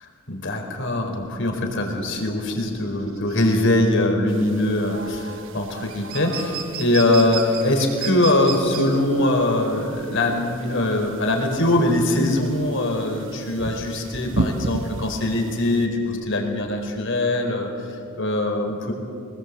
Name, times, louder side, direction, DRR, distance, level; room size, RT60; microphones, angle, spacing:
voice 1, 0.3-5.0 5.5-18.9, left 1 dB, 60° left, 3 dB, 4.5 m, -22 dB
sound 1, 0.7-17.1, right 9 dB, 85° right, 4.3 m, -36 dB
sound 2, 4.3-15.9, right 2 dB, 60° right, 1.2 m, -35 dB
24.0 x 20.5 x 8.4 m, 2.9 s
head